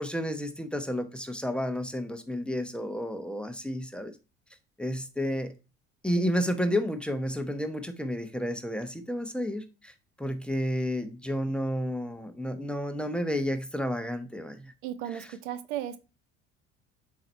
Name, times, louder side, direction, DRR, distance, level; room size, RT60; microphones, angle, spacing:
voice 1, 0.0-4.2 4.8-5.6 6.0-14.7 15.1-15.3, equal, 5° left, 0.9 m, -31 dB
voice 2, 14.8-16.0, right 11 dB, 75° right, 0.7 m, -35 dB
7.6 x 2.9 x 4.4 m
hypercardioid pair, 60°, 34 cm